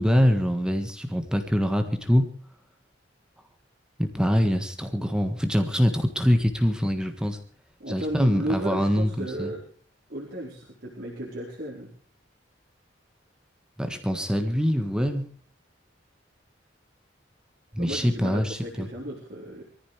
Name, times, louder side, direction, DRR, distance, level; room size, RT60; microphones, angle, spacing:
voice 1, 0.0-2.3 4.0-7.4 7.9-9.5 13.8-15.3 17.7-18.9, equal, 5° right, 6 dB, 1.5 m, -24 dB
voice 2, 7.8-9.6 10.1-11.9 17.8-19.6, right 1 dB, 55° right, -3 dB, 4.3 m, -34 dB
23.5 x 15.0 x 3.3 m, 0.43 s
head